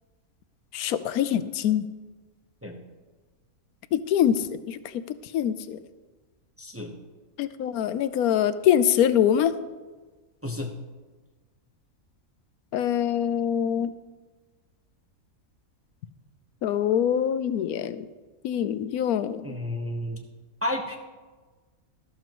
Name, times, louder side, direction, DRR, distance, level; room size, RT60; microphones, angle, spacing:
voice 1, 0.7-1.8 3.9-4.8 5.3-5.8 7.4-9.5 12.7-13.9 16.6-18.1 18.4-19.4, left 9 dB, 85° left, 13 dB, 1.1 m, -24 dB
voice 2, 6.6-6.9 10.4-10.7 19.4-20.2 20.6-21.0, left 1 dB, 10° right, 2 dB, 0.7 m, -31 dB
13.0 x 12.0 x 3.0 m, 1.3 s
omnidirectional pair, 1.5 m